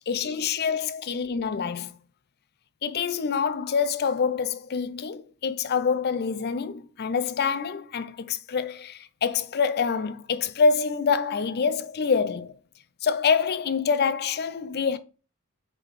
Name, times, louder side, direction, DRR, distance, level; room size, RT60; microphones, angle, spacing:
voice 1, 0.0-1.9 2.8-12.6 13.0-15.0, left 5 dB, 45° left, 0.5 m, -26 dB
4.8 x 3.9 x 5.1 m
head